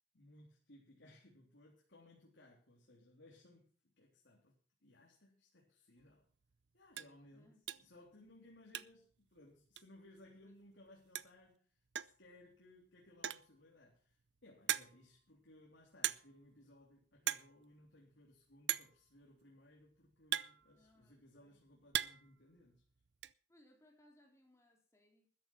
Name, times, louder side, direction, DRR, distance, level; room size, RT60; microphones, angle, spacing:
voice 1, 0.1-6.3 6.7-22.8, left 1 dB, 70° left, 3.5 m, -63 dB
sound 1, 6.0-6.1 6.5-6.6 6.9-7.2 7.7-8.0 8.3-9.1 9.4-9.5 9.8-9.9 10.9-11.0 11.2-11.5 12.0-12.3 13.1-13.6 14.1-14.2 14.7-15.2 16.0-16.5 16.7-16.9 17.2-17.5 17.8-17.9 18.7-19.0 19.8-21.1 21.6-22.3 22.6-23.3, right 11 dB, 65° right, 0.6 m, -39 dB
voice 2, 7.3-7.6 10.4-10.5 20.7-21.6 23.5-25.3, left 1 dB, 15° left, 3.8 m, -68 dB
13.5 x 10.5 x 6.0 m
head